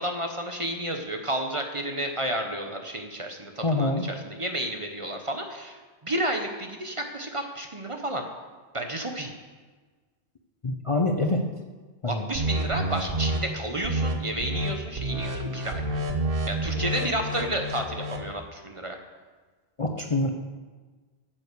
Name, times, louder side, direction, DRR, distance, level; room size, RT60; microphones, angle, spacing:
voice 1, 0.0-8.2 8.7-9.3 12.1-15.8 16.5-19.0, right 1 dB, 30° right, 4 dB, 0.9 m, -31 dB
voice 2, 3.6-4.1 10.6-11.4 12.0-12.3 19.8-20.3, left 2 dB, 35° left, 3 dB, 0.6 m, -25 dB
sound 1, 12.3-13.4 13.8-14.1 14.4-14.7 15.0-18.3, right 1 dB, 55° right, 1.3 m, -29 dB
9.1 x 7.5 x 6.6 m, 1.4 s
omnidirectional pair, 1.1 m